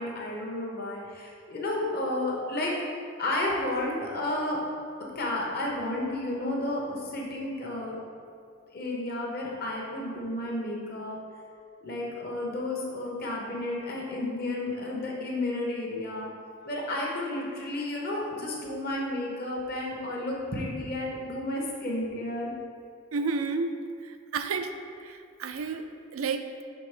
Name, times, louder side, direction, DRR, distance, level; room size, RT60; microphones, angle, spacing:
voice 1, 0.0-2.8 3.2-4.6 5.1-8.0 8.7-11.2 11.8-16.3 16.6-22.5, left 1 dB, 45° left, -2 dB, 1.0 m, -32 dB
voice 2, 23.1-23.7 24.0-24.7 25.0-26.5, right 4 dB, 90° right, 8 dB, 0.4 m, -31 dB
5.8 x 3.7 x 5.0 m, 2.3 s
head